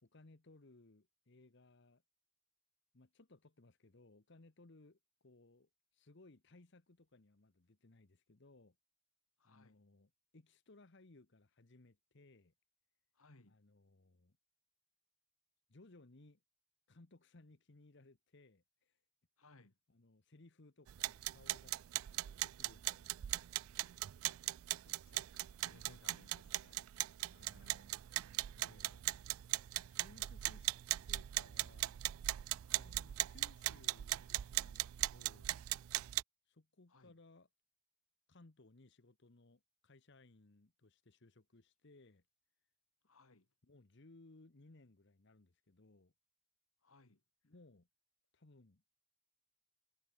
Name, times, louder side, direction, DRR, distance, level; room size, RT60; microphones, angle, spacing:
voice 1, 0.0-2.0 2.9-8.8 9.4-12.5 13.5-14.4 15.7-16.4 16.9-19.0 19.9-23.5 27.2-28.0 28.6-29.0 29.9-30.7 31.1-32.0 32.7-35.5 36.5-37.5 38.3-42.2 43.6-46.1 47.4-47.9 48.3-48.8, left 2 dB, 55° left, 1.1 m, -63 dB
voice 2, 9.4-9.8 13.2-13.6 19.4-19.8 24.8-26.9 32.7-33.0 36.9-37.2 43.1-43.5 46.8-47.2, left 2 dB, 80° left, 2.1 m, -64 dB
sound 1, 20.9-36.2, right 16 dB, 80° right, 0.4 m, -39 dB
head